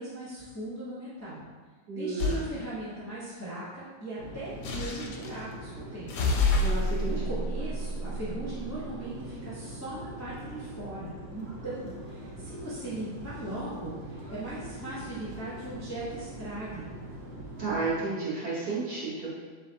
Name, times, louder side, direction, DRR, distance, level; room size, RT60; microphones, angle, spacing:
voice 1, 0.0-1.4 1.9-6.1 7.1-16.9, right 1 dB, 25° left, -10 dB, 0.4 m, -39 dB
voice 2, 1.9-2.5 6.6-7.2 17.6-19.4, right 3 dB, 50° right, -9 dB, 1.6 m, -32 dB
sound 1, 2.2-2.5 4.6-5.4 6.1-8.7, left 2 dB, 90° left, 1.4 m, -28 dB
sound 2, 4.2-18.0, right 1 dB, 70° right, 0.6 m, -43 dB
4.0 x 3.9 x 2.8 m, 1.5 s
omnidirectional pair, 2.1 m